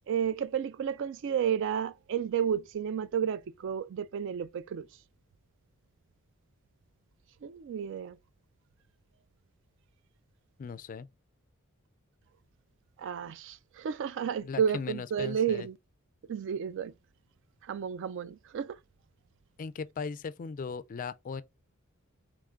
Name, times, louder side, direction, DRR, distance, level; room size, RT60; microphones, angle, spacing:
voice 1, 0.1-4.9 7.4-8.2 13.0-15.8 16.3-16.9 17.6-18.8, right 8 dB, 60° right, 0.3 m, -32 dB
voice 2, 10.6-11.1 14.4-15.7 19.6-21.4, left 5 dB, 40° left, 0.3 m, -38 dB
3.6 x 3.2 x 3.7 m
head